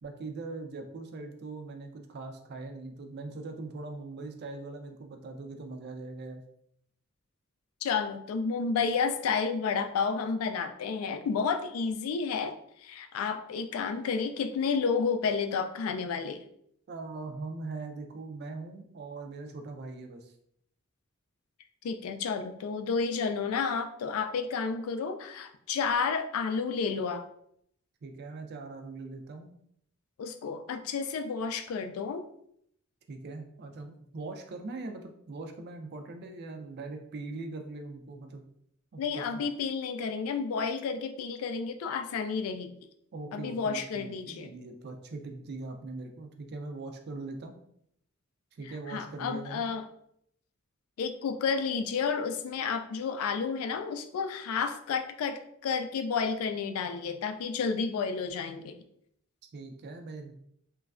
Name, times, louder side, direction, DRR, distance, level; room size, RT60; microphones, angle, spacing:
voice 1, 0.0-6.4 16.9-20.3 28.0-29.5 33.1-38.4 38.9-39.4 43.1-47.5 48.5-49.7 59.5-60.3, right 3 dB, 50° right, 5 dB, 0.4 m, -41 dB
voice 2, 7.8-16.4 21.8-27.3 30.2-32.2 39.0-42.7 43.3-44.5 48.9-49.9 51.0-58.7, left 5 dB, 80° left, 8 dB, 0.3 m, -31 dB
3.1 x 2.2 x 2.4 m, 0.72 s
head